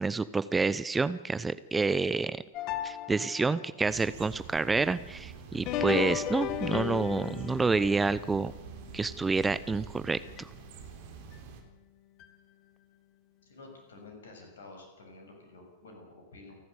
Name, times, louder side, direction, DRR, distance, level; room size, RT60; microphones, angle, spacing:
voice 1, 0.0-2.4 2.8-8.5 8.9-10.2, right 4 dB, 10° right, 16 dB, 0.7 m, -28 dB
sound 1, 2.5-3.7 5.5-9.9 10.4-10.5 11.3-11.4 12.2-12.3, left 10 dB, 40° left, 1.6 m, -36 dB
sound 2, 3.8-11.6, right 7 dB, 50° right, 3.7 m, -47 dB
voice 2, 13.4-16.6, left 3 dB, 65° left, 3 dB, 7.0 m, -50 dB
28.5 x 12.5 x 8.3 m, 0.97 s
figure-of-eight pair, 90°, 0 cm